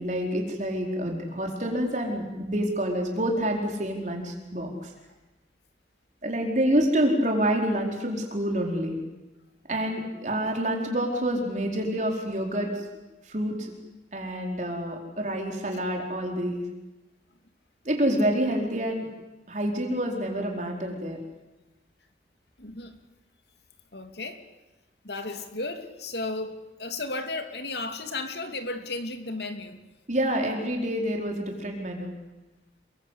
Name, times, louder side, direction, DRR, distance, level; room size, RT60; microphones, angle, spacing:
voice 1, 0.0-4.9 6.2-9.0 9.7-12.9 13.2-13.7 14.1-16.7 17.8-19.1 19.5-21.2 30.1-32.1, right 1 dB, 40° right, 1 dB, 4.4 m, -27 dB
voice 2, 22.6-23.0 23.9-24.4 25.0-29.8, left 2 dB, 70° left, 7 dB, 2.9 m, -34 dB
28.5 x 22.5 x 8.3 m, 1.1 s
head